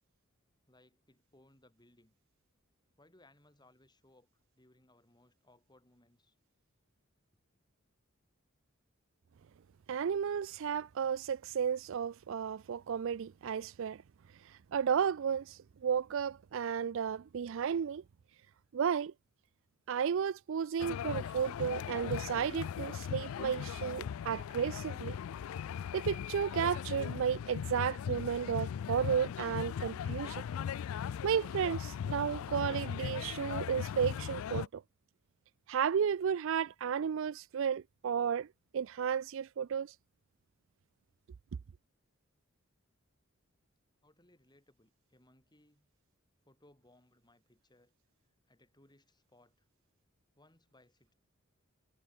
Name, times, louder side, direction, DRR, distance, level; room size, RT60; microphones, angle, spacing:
voice 1, 0.7-2.1 3.0-4.3 4.5-6.4 7.3-7.4 44.0-45.9 46.5-47.9 48.5-49.7 50.3-51.1, left 1 dB, 20° left, 6.9 m, -65 dB
voice 2, 9.9-14.0 14.4-18.0 18.7-19.1 19.9-25.2 25.9-30.4 31.2-34.8 35.7-38.5 38.7-39.9, right 7 dB, 65° right, 0.4 m, -33 dB
sound 1, 20.8-34.7, left 8 dB, 75° left, 0.3 m, -39 dB
head